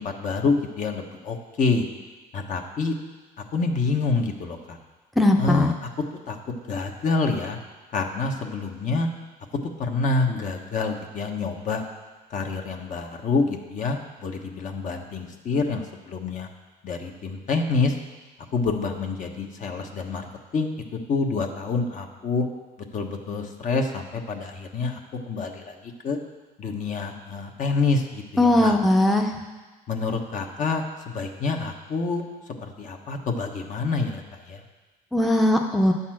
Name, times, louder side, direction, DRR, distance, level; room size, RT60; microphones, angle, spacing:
voice 1, 0.0-1.9 2.3-3.0 3.5-4.8 5.4-5.7 6.3-6.4 6.7-7.6 7.9-9.1 9.8-11.8 12.3-16.5 16.8-17.9 18.5-20.3 20.5-22.4 22.9-25.0 25.3-26.2 26.6-28.8 29.9-32.2 32.6-34.6, left 4 dB, 50° left, 3 dB, 1.1 m, -27 dB
voice 2, 5.2-5.7 28.4-29.3 35.1-35.9, left 1 dB, ahead, 2 dB, 0.7 m, -19 dB
10.0 x 4.2 x 7.5 m, 1.3 s
cardioid pair, 110°, 17 cm